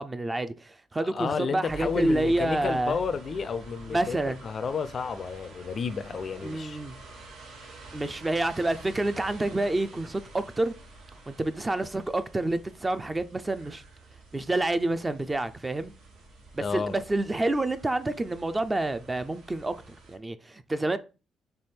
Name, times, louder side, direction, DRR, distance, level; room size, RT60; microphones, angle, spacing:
voice 1, 0.0-3.0 3.9-4.4 6.4-7.0 7.9-10.7 11.3-13.8 14.3-15.9 16.5-21.0, right 2 dB, 20° right, 0.4 m, -28 dB
voice 2, 1.0-6.8 16.6-17.0, left 5 dB, 50° left, 0.3 m, -31 dB
sound 1, 1.7-20.2, right 3 dB, 85° right, 1.3 m, -48 dB
3.4 x 3.4 x 4.3 m
cardioid pair, 90°, 0 cm